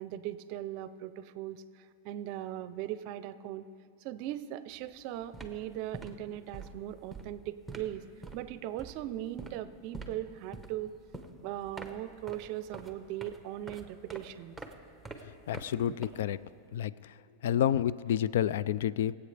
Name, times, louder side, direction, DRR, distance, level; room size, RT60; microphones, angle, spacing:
voice 1, 0.0-3.6 4.0-8.0 8.3-10.9 11.4-14.6, right 12 dB, 55° right, 14 dB, 0.5 m, -39 dB
sound 1, 4.7-4.9 5.2-16.6, right 2 dB, 5° right, 1.0 m, -47 dB
voice 2, 15.5-16.4 16.7-16.9 17.4-19.1, left 10 dB, 80° left, 18 dB, 0.3 m, -29 dB
24.0 x 8.1 x 3.4 m, 2.4 s
supercardioid pair, 130°, 0 cm